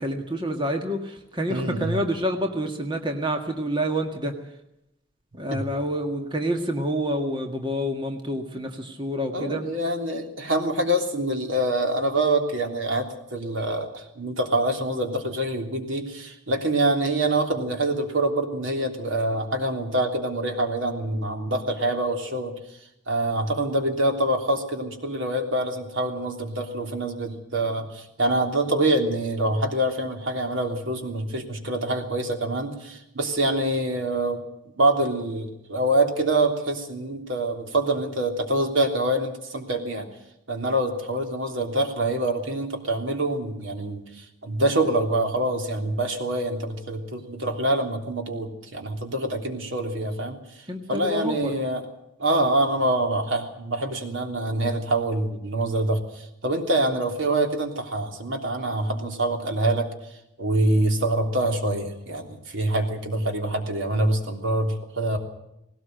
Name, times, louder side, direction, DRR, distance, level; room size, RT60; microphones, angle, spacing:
voice 1, 0.0-4.3 5.3-9.6 50.7-51.5, equal, 25° right, 4 dB, 1.8 m, -28 dB
voice 2, 1.5-2.0 5.5-5.6 9.3-22.5 23.1-34.4 34.8-40.1 40.5-50.4 50.9-51.8 52.2-59.9 60.4-65.2, right 1 dB, 80° right, 4 dB, 3.4 m, -25 dB
19.5 x 18.0 x 7.8 m, 0.84 s
head